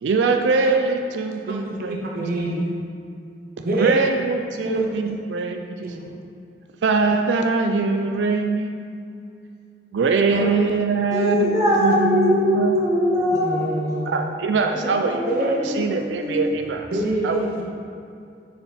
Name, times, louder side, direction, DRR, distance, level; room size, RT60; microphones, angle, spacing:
voice 1, 0.0-2.0 3.8-5.9 6.8-8.8 9.9-11.4 11.8-12.7 14.1-16.9 17.2-17.5, right 4 dB, 85° right, 5 dB, 0.4 m, -22 dB
voice 2, 1.4-2.7 3.6-4.1 4.6-4.8 5.8-6.0 10.3-10.5 13.3-14.1 15.3-15.8 16.9-17.6, right 1 dB, 55° right, -2 dB, 0.7 m, -26 dB
voice 3, 11.1-13.8 14.7-16.4, equal, 20° right, -7 dB, 1.6 m, -22 dB
6.8 x 4.7 x 4.1 m, 2.5 s
head